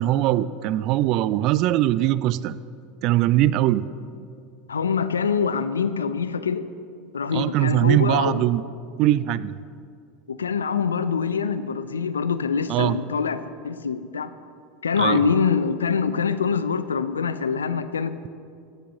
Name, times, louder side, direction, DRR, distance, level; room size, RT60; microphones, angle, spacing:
voice 1, 0.0-2.6 3.0-3.9 7.3-8.6 9.0-9.5 12.7-13.0 15.0-15.2, right 14 dB, 50° right, 17 dB, 0.4 m, -21 dB
voice 2, 4.7-6.6 7.1-8.4 10.3-14.3 14.8-18.3, left 6 dB, 80° left, 12 dB, 0.6 m, -24 dB
15.5 x 7.7 x 6.6 m, 2.3 s
figure-of-eight pair, 80°, 0 cm